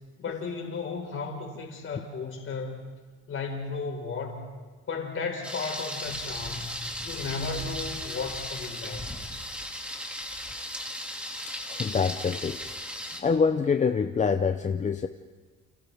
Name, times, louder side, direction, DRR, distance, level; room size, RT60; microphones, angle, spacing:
voice 1, 0.2-2.8 3.3-4.5 4.9-6.7 7.0-9.1, left 4 dB, 40° left, 1 dB, 4.7 m, -34 dB
Thunder, 5.4-13.2, equal, 5° right, 2.2 m, -36 dB
voice 2, 11.4-12.6 13.2-15.1, left 5 dB, 25° left, 7 dB, 0.6 m, -26 dB
30.0 x 29.0 x 3.5 m, 1.4 s
cardioid pair, 135°, 31 cm